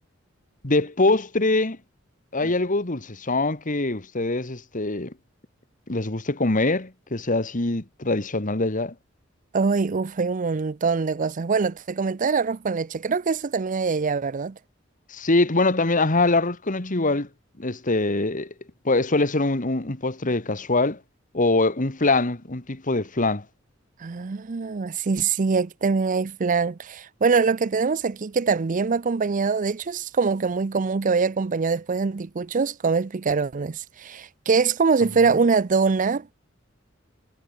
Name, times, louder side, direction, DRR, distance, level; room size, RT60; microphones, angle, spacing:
voice 1, 0.6-1.8 2.3-5.1 5.9-8.9 15.1-17.3 17.6-18.5 18.8-21.0 21.3-23.4, left 2 dB, 40° left, 1.8 m, -23 dB
voice 2, 9.5-14.6 24.0-36.3, right 5 dB, 40° right, 0.5 m, -23 dB
head